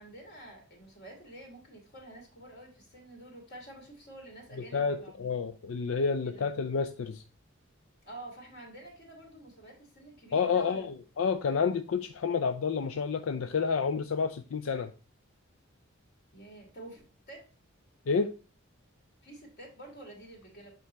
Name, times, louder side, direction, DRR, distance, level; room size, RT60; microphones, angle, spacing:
voice 1, 0.0-5.3 6.2-6.5 8.0-10.9 16.3-17.5 19.2-20.7, right 1 dB, 55° left, 2.8 m, -49 dB
voice 2, 4.7-7.2 10.3-10.9 11.2-14.9 18.1-18.3, left 5 dB, 85° left, 0.4 m, -29 dB
8.3 x 3.8 x 3.3 m
head